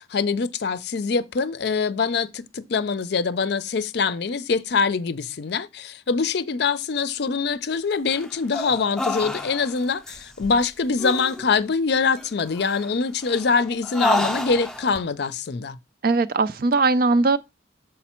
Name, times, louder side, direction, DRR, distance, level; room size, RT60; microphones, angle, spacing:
voice 1, 0.0-15.8, left 5 dB, 55° left, 0.5 m, -24 dB
sound 1, 8.1-9.8 10.1-10.6 11.0-11.5 12.2-12.9 13.2-15.0, left 1 dB, ahead, 0.6 m, -29 dB
voice 2, 16.0-17.4, right 3 dB, 45° right, 0.4 m, -19 dB
7.0 x 5.0 x 4.3 m
head